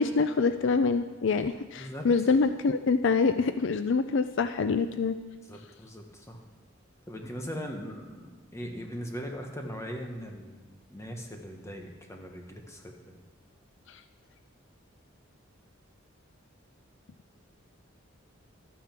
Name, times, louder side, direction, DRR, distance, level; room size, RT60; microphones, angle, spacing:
voice 1, 0.0-5.2, left 4 dB, 65° left, 11 dB, 0.4 m, -25 dB
voice 2, 5.5-6.4 7.1-13.2, equal, 15° left, 2 dB, 1.4 m, -40 dB
13.0 x 9.2 x 6.0 m, 1.3 s
head